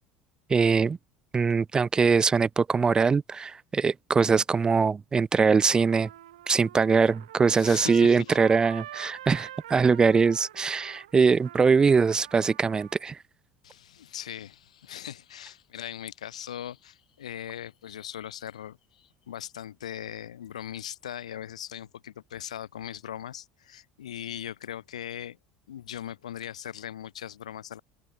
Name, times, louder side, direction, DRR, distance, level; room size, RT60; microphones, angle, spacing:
voice 1, 0.5-1.0 1.3-6.1 6.5-13.2, right 5 dB, 20° right, 0.4 m, -22 dB
Trumpet, 5.3-13.0, right 13 dB, 70° right, 1.2 m, -46 dB
voice 2, 7.5-8.4 13.6-25.4 25.7-27.8, left 10 dB, 70° left, 0.8 m, -39 dB
figure-of-eight pair, 65°, 4 cm